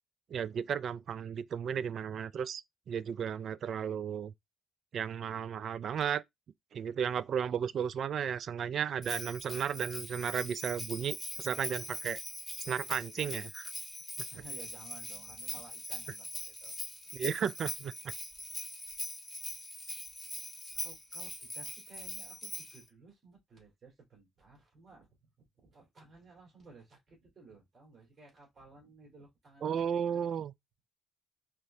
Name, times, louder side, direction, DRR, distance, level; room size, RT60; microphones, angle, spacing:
voice 1, 0.3-2.6 2.9-4.3 4.9-6.2 6.7-12.2 12.7-13.7 17.1-18.1 29.6-30.5, right 8 dB, 60° right, 0.3 m, -34 dB
Bell, 9.0-22.8, left 1 dB, 10° left, 1.5 m, -42 dB
voice 2, 14.3-16.7 20.7-30.3, right 3 dB, 35° right, 2.7 m, -56 dB
4.8 x 2.6 x 3.2 m
cardioid pair, 90°, 0 cm